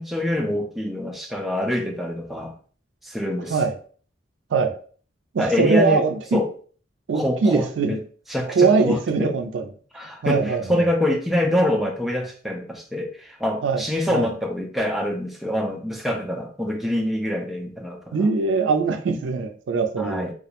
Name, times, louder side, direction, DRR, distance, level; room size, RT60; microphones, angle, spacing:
voice 1, 0.0-2.5 3.0-3.6 5.4-6.0 6.3-6.5 7.1-8.0 8.3-9.3 9.9-18.3 20.0-20.3, left 1 dB, ahead, 1 dB, 0.3 m, -25 dB
voice 2, 5.3-6.4 7.1-8.0 8.6-9.7 10.2-10.8 13.6-13.8 14.1-14.3 18.1-20.3, right 4 dB, 80° right, 7 dB, 0.4 m, -21 dB
2.4 x 2.0 x 2.9 m, 0.43 s
head